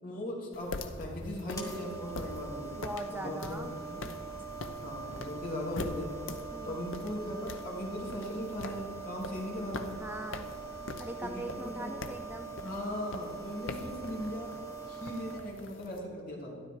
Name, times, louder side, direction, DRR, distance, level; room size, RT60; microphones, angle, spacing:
voice 1, 0.0-2.8 3.1-4.0 4.8-6.2 6.6-10.0 11.2-11.9 12.6-14.6 14.8-16.6, left 1 dB, 45° left, -3 dB, 3.3 m, -39 dB
sound 1, 0.5-16.0, left 2 dB, 80° left, 0.9 m, -44 dB
sound 2, 1.5-15.4, right 5 dB, 15° left, 1.6 m, -43 dB
voice 2, 2.7-3.8 6.5-6.8 9.9-10.5 11.0-12.5, right 1 dB, 10° right, 5 dB, 0.5 m, -41 dB
13.0 x 11.5 x 4.8 m, 2.4 s
head